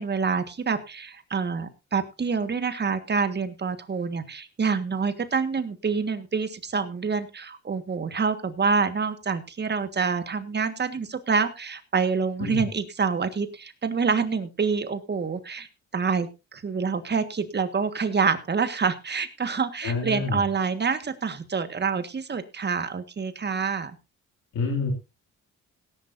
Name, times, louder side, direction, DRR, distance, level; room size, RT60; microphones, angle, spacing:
voice 1, 0.0-15.7 15.9-23.9, right 5 dB, 35° right, 10 dB, 1.6 m, -27 dB
voice 2, 19.8-20.4 24.5-24.9, left 3 dB, 80° left, 1 dB, 2.6 m, -27 dB
18.0 x 10.5 x 2.7 m, 0.27 s
cardioid pair, 90°, 30 cm